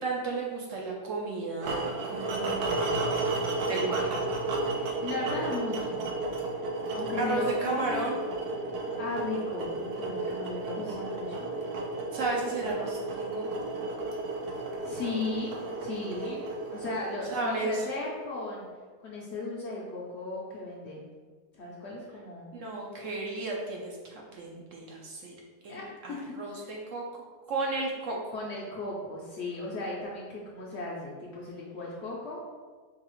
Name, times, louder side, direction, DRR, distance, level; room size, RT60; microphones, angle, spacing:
voice 1, 0.0-3.0 3.6-4.1 7.2-8.2 12.1-13.4 17.3-17.8 22.5-25.3 25.6-27.2 27.5-28.3, right 3 dB, 65° right, -1 dB, 0.8 m, -33 dB
sound 1, 1.6-17.7, right 2 dB, 85° right, 1.1 m, -33 dB
voice 2, 4.7-6.0 6.9-8.1 9.0-11.6 14.8-15.5 15.8-18.7 19.0-21.1 21.5-22.5 25.7-26.2 28.3-32.4, left 3 dB, 60° left, -4 dB, 0.7 m, -36 dB
4.6 x 2.4 x 3.0 m, 1.5 s
omnidirectional pair, 1.6 m